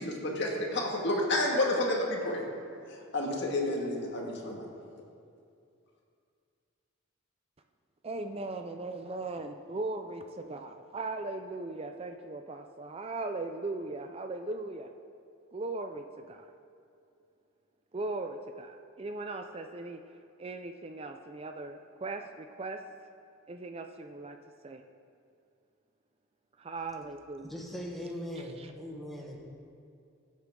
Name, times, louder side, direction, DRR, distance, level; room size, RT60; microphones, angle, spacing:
voice 1, 0.0-2.5 2.9-4.7, left 1 dB, 55° left, -1 dB, 2.0 m, -30 dB
voice 2, 8.0-14.9 15.5-16.4 17.9-20.0 20.4-22.8 23.5-24.4 24.6-24.8 26.6-27.5 28.6-28.7, right 2 dB, 30° right, 6 dB, 0.4 m, -38 dB
voice 3, 27.4-29.4, equal, ahead, -2 dB, 1.5 m, -40 dB
22.0 x 8.2 x 3.8 m, 2.4 s
head